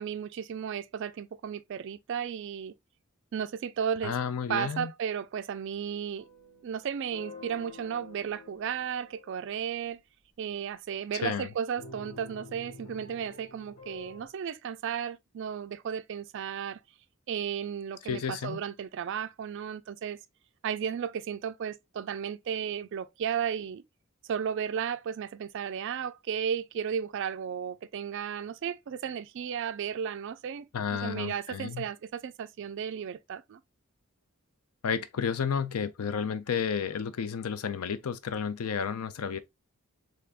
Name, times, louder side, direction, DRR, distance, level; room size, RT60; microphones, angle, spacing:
voice 1, 0.0-2.7 3.3-4.1 4.5-6.3 6.6-10.0 10.4-16.8 17.3-20.2 20.6-23.8 24.3-30.7 31.0-33.6, right 8 dB, 60° right, 0.3 m, -34 dB
voice 2, 4.0-4.9 11.2-11.5 18.0-18.6 30.7-31.9 34.8-39.4, left 7 dB, 90° left, 0.5 m, -31 dB
sound 1, 6.2-9.6 11.8-14.3, left 3 dB, 65° left, 1.2 m, -49 dB
3.5 x 3.3 x 2.3 m
head